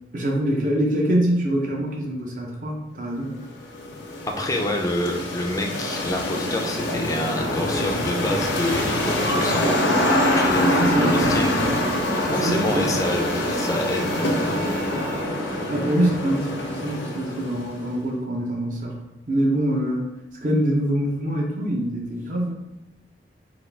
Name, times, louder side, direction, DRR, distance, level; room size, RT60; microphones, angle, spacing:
voice 1, 0.1-3.4 10.6-11.2 12.3-12.9 15.7-19.0 19.3-20.1 20.4-22.5, right 1 dB, 45° right, -1 dB, 0.6 m, -24 dB
sound 1, 3.4-17.9, left 1 dB, 90° left, 0.7 m, -24 dB
voice 2, 4.3-9.8 10.1-11.5 12.1-14.8, left 1 dB, 20° left, 2 dB, 0.4 m, -28 dB
3.6 x 2.3 x 3.4 m, 0.97 s
head